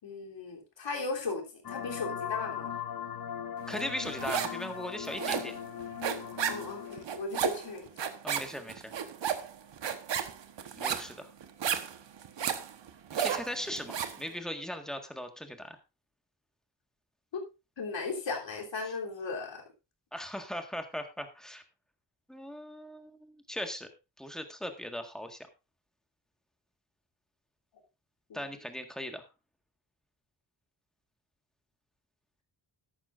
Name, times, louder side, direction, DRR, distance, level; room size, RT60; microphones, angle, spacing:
voice 1, 0.0-2.7 6.5-7.9 17.3-17.4 17.8-19.6 28.3-28.5, left 4 dB, 80° left, 0 dB, 3.4 m, -37 dB
sound 1, 1.6-7.0, left 8 dB, 55° left, 1.0 m, -39 dB
voice 2, 3.7-5.5 8.2-8.9 10.8-11.3 13.2-15.8 20.1-21.6 22.3-23.9 24.2-25.4 28.3-29.2, equal, ahead, 5 dB, 1.6 m, -39 dB
sound 2, 3.8-4.7 4.9-14.2, right 8 dB, 75° right, 1.3 m, -33 dB
13.5 x 12.0 x 2.5 m, 0.27 s
wide cardioid pair, 135°, 44 cm